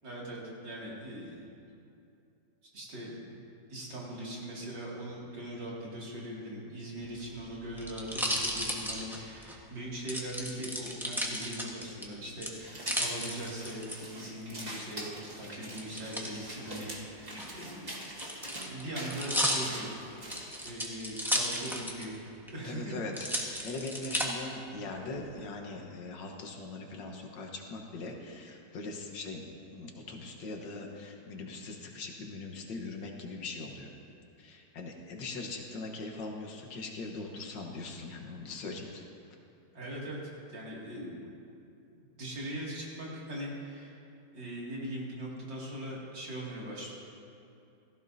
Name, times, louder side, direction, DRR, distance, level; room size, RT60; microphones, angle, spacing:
voice 1, 0.0-1.5 1.8-1.9 2.7-3.4 3.7-17.9 18.6-19.9 20.6-22.1 22.5-22.9 39.7-40.2 40.5-41.2 42.2-44.0 44.3-46.9, right 1 dB, 70° right, -5 dB, 3.1 m, -40 dB
sound 1, 7.0-9.6 10.1-12.0 12.4-14.0 15.8-16.3 17.3-22.2 22.5-22.6 23.1-24.3 24.9-25.4, equal, ahead, 0.9 m, -34 dB
sound 2, 12.6-20.7, right 1 dB, 25° right, 1.5 m, -44 dB
voice 2, 22.6-23.3 23.6-33.9 34.4-39.0, left 3 dB, 70° left, 1 dB, 1.8 m, -41 dB
16.5 x 14.5 x 2.7 m, 2.6 s
omnidirectional pair, 2.0 m